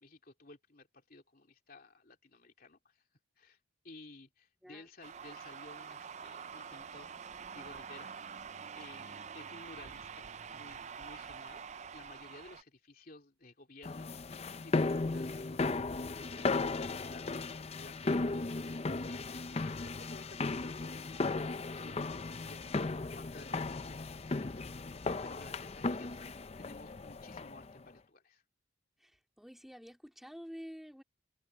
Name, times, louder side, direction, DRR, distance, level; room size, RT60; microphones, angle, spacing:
voice 1, 0.0-3.0 3.4-3.6 3.8-7.2 7.5-8.1 8.8-11.6 11.9-14.1 14.6-18.8 19.1-21.0 21.7-22.9 23.2-24.9 25.2-26.2 26.6-28.4, left 2 dB, 45° left, 2.9 m, -55 dB
sound 1, 5.0-12.6, right 6 dB, 35° right, 0.4 m, -46 dB
sound 2, 13.8-27.7, left 3 dB, 30° left, 0.5 m, -36 dB
sound 3, 21.2-27.3, left 1 dB, 80° left, 2.3 m, -61 dB
voice 2, 29.0-31.0, equal, ahead, 3.7 m, -49 dB
head